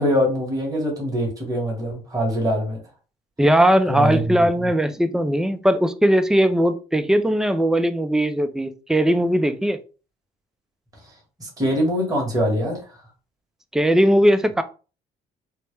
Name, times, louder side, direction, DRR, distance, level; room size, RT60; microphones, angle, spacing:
voice 1, 0.0-2.8 3.9-4.7 11.4-12.8, equal, 20° right, -2 dB, 1.9 m, -23 dB
voice 2, 3.4-9.8 13.7-14.6, equal, 5° right, 10 dB, 0.4 m, -19 dB
4.4 x 2.1 x 3.3 m, 0.34 s
cardioid pair, 110°, 17 cm